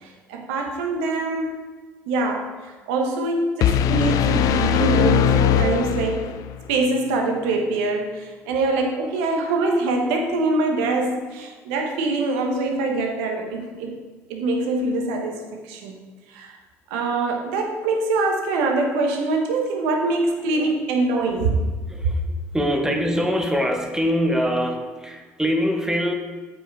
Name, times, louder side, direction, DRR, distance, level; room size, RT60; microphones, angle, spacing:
voice 1, 0.0-1.5 2.1-6.3 6.7-14.0 14.3-16.0 16.3-16.6 16.9-21.6 22.0-22.1, right 3 dB, 80° right, 3 dB, 1.3 m, -24 dB
sound 1, 3.6-6.6, left 10 dB, 60° left, 0.4 m, -20 dB
voice 2, 21.0-21.3 21.9-22.2 22.5-26.1, equal, 10° right, 3 dB, 1.5 m, -23 dB
7.8 x 5.7 x 4.8 m, 1.4 s
hypercardioid pair, 65°, 7 cm